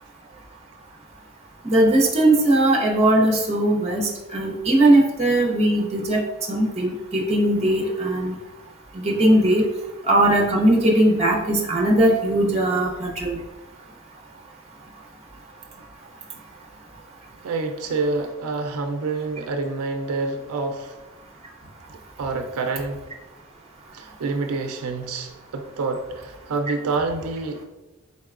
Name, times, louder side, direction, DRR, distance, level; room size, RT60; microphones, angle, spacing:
voice 1, 1.6-6.2 6.5-8.3 8.9-9.7 10.0-13.4, right 1 dB, 30° right, 0 dB, 0.7 m, -19 dB
voice 2, 17.4-20.9 22.2-23.0 23.9-27.6, right 3 dB, 85° right, 6 dB, 0.4 m, -27 dB
4.4 x 4.0 x 2.4 m, 1.1 s
head